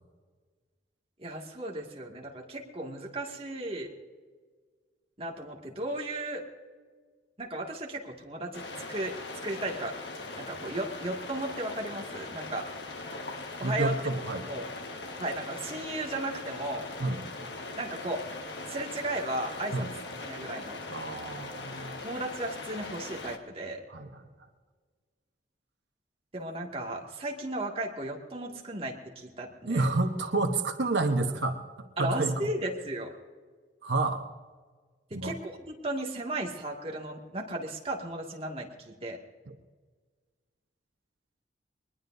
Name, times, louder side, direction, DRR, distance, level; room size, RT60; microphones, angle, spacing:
voice 1, 1.2-3.9 5.2-6.5 7.4-10.0 10.4-12.7 13.6-14.0 14.5-14.7 15.2-16.9 17.8-18.3 18.7-19.9 20.2-20.9 22.0-23.8 26.3-29.9 32.0-33.1 35.1-39.2, right 1 dB, 35° right, 0 dB, 2.1 m, -35 dB
sound 1, 8.5-23.4, left 3 dB, 80° left, 1.5 m, -40 dB
voice 2, 13.6-14.5 17.0-17.2 19.7-19.9 20.9-22.0 23.9-24.2 29.7-31.6 32.0-32.3 33.8-34.2 35.1-35.3, right 2 dB, 90° right, 5 dB, 1.1 m, -29 dB
22.5 x 20.5 x 2.7 m, 1.5 s
head